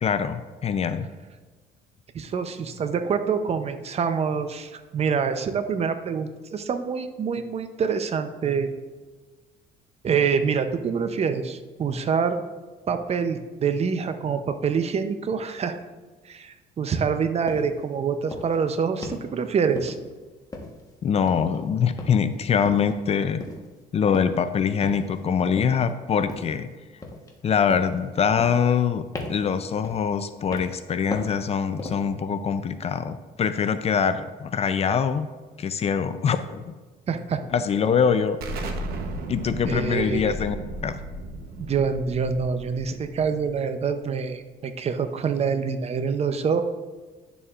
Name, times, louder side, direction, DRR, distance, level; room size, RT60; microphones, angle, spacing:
voice 1, 0.0-1.1 21.0-23.4 23.9-26.7 27.4-35.3 35.6-36.7 37.5-38.4 39.3-40.6 40.8-41.0, left 7 dB, 40° left, 11 dB, 0.5 m, -24 dB
voice 2, 2.1-8.7 10.0-12.4 12.9-15.8 16.2-20.0 37.1-37.4 39.7-40.3 41.6-46.6, right 6 dB, 40° right, 9 dB, 0.7 m, -26 dB
sound 1, 17.5-17.7 18.3-18.6 19.0-19.3 19.8-20.2 20.5-20.9 21.3-21.6 22.0-22.3 22.6-22.9 23.4-23.7 24.1-24.4 24.8-25.2 25.6-25.9 26.3-26.6 27.0-27.4 27.7-28.0 28.4-28.9 29.1-29.5 29.8-30.1 30.5-30.8 31.1-31.4 31.8-32.1, left 2 dB, 20° left, 1.2 m, -36 dB
Explosion, 38.4-43.8, right 1 dB, 65° right, 1.0 m, -35 dB
10.5 x 6.9 x 2.5 m, 1.3 s
cardioid pair, 110°, 17 cm